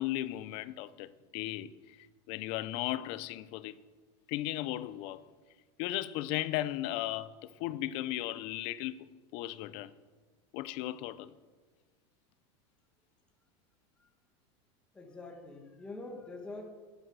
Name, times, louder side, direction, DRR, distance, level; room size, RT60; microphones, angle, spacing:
voice 1, 0.0-3.7 4.3-5.2 5.8-9.9 10.5-11.3, left 15 dB, 40° left, 0.5 m, -36 dB
voice 2, 14.9-16.7, left 2 dB, 5° left, 1.4 m, -45 dB
11.5 x 11.0 x 6.2 m
supercardioid pair, 170°, 15 cm